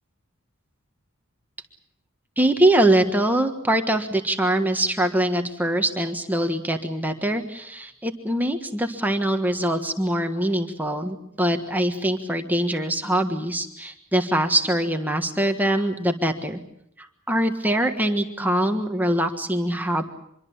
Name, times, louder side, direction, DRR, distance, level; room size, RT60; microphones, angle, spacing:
voice 1, 2.4-16.6 17.0-20.0, right 1 dB, 10° right, 4 dB, 1.5 m, -23 dB
26.0 x 22.5 x 7.2 m, 0.74 s
head